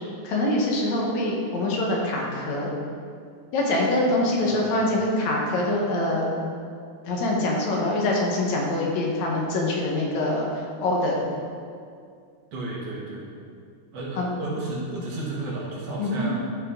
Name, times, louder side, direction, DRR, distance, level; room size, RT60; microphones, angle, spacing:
voice 1, 0.2-2.7 3.5-6.3 7.1-11.2 14.2-14.3 16.0-16.3, left 1 dB, 70° left, -2 dB, 2.6 m, -24 dB
voice 2, 4.4-4.7 12.5-13.3 13.9-16.4, right 2 dB, 60° right, -5 dB, 2.7 m, -33 dB
12.5 x 6.3 x 3.8 m, 2.2 s
omnidirectional pair, 3.4 m